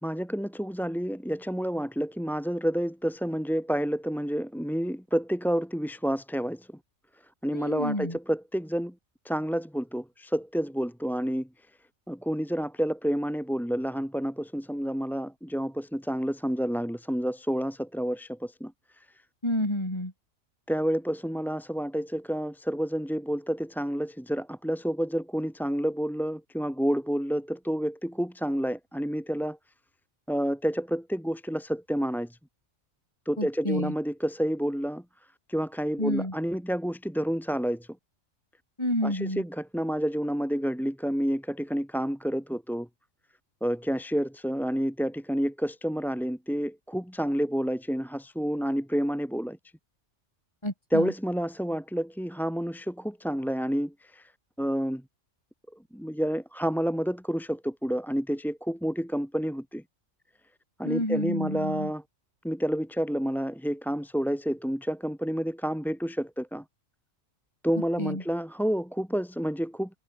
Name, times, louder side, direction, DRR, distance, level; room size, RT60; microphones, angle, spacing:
voice 1, 0.0-6.7 7.4-8.9 9.2-11.5 12.1-18.7 20.7-29.6 30.3-32.4 33.2-35.0 35.5-37.9 39.0-42.9 43.6-49.6 50.9-54.3 54.6-55.0 55.9-59.8 60.8-62.0 62.4-66.6 67.6-69.9, equal, ahead, 3.0 m, -29 dB
voice 2, 7.5-8.2 19.4-20.1 33.4-33.9 36.0-36.3 38.8-39.4 50.6-51.1 60.8-61.9 68.0-68.2, left 1 dB, 20° left, 5.6 m, -29 dB
omnidirectional pair, 1.3 m